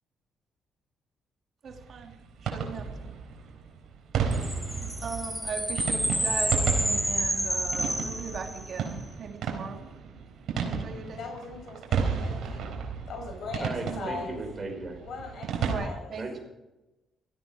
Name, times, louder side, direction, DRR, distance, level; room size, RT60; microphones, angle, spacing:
voice 1, 1.6-2.1 2.4-3.1 5.0-9.8 10.6-11.2 13.9-14.1 15.6-16.4, right 5 dB, 55° right, 2 dB, 2.8 m, -38 dB
sound 1, 1.7-15.8, right 6 dB, 70° right, 3.9 m, -33 dB
sound 2, 4.3-8.9, equal, ahead, 2.1 m, -30 dB
voice 2, 11.2-12.8 13.1-14.3 15.0-16.1, left 4 dB, 65° left, 5 dB, 5.4 m, -40 dB
voice 3, 13.6-15.0 16.1-16.4, right 2 dB, 30° right, 2 dB, 5.4 m, -36 dB
16.5 x 14.5 x 5.0 m, 1.0 s
cardioid pair, 90°, 0 cm